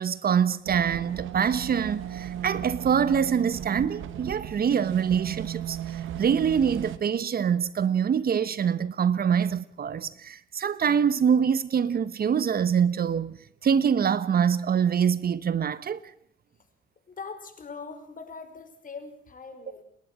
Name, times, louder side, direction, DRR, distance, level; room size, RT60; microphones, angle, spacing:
voice 1, 0.0-13.4 13.6-16.0, right 7 dB, 50° right, 1.1 m, -25 dB
sound 1, 0.6-7.0, right 10 dB, 80° right, 1.6 m, -36 dB
voice 2, 17.1-19.8, left 4 dB, 45° left, 5.4 m, -41 dB
30.0 x 11.5 x 8.8 m
cardioid pair, 90°, 20 cm